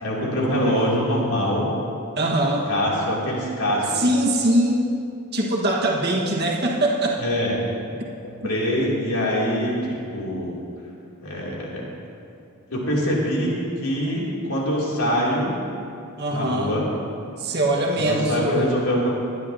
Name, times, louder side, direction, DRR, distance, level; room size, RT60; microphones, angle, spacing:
voice 1, 0.0-1.7 2.7-4.0 7.2-7.5 7.9-8.0 8.2-10.5 11.2-11.8 12.7-13.5 13.8-15.5 16.3-16.9 18.0-19.1, equal, 80° left, -5 dB, 2.9 m, -24 dB
voice 2, 2.2-2.7 3.9-4.9 5.3-7.2 8.4-8.5 16.2-16.7 17.4-18.7, right 1 dB, 50° right, -2 dB, 1.5 m, -22 dB
18.0 x 11.0 x 2.8 m, 2.5 s
head